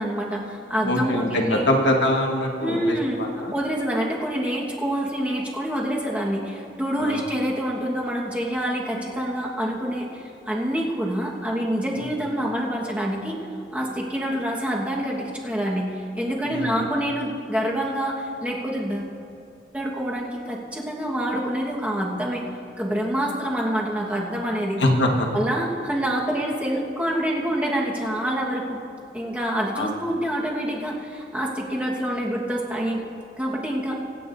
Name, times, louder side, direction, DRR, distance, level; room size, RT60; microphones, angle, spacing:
voice 1, 0.0-1.7 2.6-3.2 3.5-13.4 13.7-19.1 19.7-22.4 22.8-24.8 25.3-28.8 29.1-33.0 33.4-34.0, equal, 10° right, -3 dB, 1.4 m, -26 dB
voice 2, 0.8-3.5 7.0-7.2 12.0-12.1 16.4-16.8 24.8-25.3 29.7-30.0, left 1 dB, 80° left, 1 dB, 1.5 m, -23 dB
25.5 x 9.3 x 2.7 m, 2.5 s
head